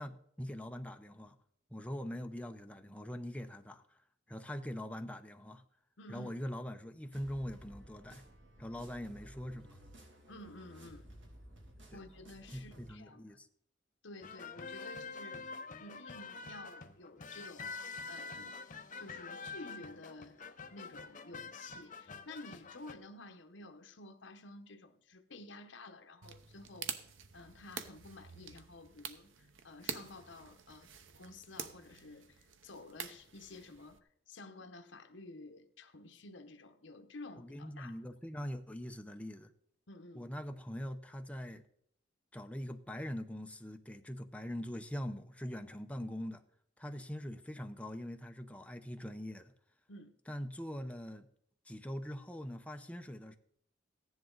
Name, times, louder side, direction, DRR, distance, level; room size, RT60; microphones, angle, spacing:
voice 1, 0.0-1.4 1.7-4.0 4.3-5.6 6.1-8.2 8.6-9.8 11.9-12.0 12.5-13.5 37.4-39.5 40.1-41.6 42.3-46.4 46.8-49.5 50.3-51.3 51.6-53.3, equal, 5° left, 0.8 m, -43 dB
voice 2, 6.0-6.3 10.3-11.2 11.9-13.4 14.0-15.4 15.8-17.8 18.1-18.5 19.0-26.9 27.3-30.9 31.2-34.0 34.3-38.0 39.9-40.3 49.9-50.1, left 2 dB, 70° left, 1.1 m, -52 dB
sound 1, 7.1-12.9, equal, 70° right, 2.8 m, -55 dB
sound 2, 14.2-23.0, left 4 dB, 45° left, 0.9 m, -46 dB
sound 3, 26.2-34.0, right 7 dB, 90° right, 0.9 m, -47 dB
15.5 x 10.5 x 4.0 m
head